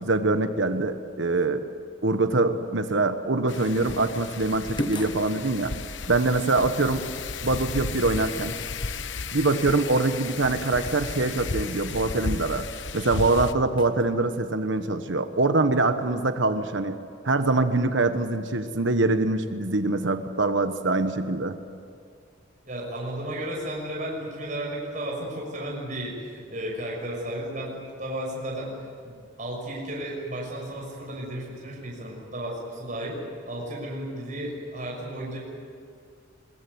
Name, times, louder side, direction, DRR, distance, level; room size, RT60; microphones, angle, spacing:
voice 1, 0.0-1.6 2.0-5.7 6.1-7.1 7.4-8.5 9.3-12.6 12.9-17.0 17.2-21.6, right 2 dB, 70° right, 8 dB, 1.3 m, -24 dB
Wind, 3.5-13.5, left 4 dB, 65° left, 1.1 m, -34 dB
sound 1, 3.6-3.9 4.8-5.3 6.6-6.8 11.9-12.2 13.8-14.1, left 1 dB, 25° left, 1.1 m, -35 dB
voice 2, 22.6-35.4, right 1 dB, 40° right, -2 dB, 6.2 m, -34 dB
23.0 x 22.0 x 9.5 m, 2.2 s
head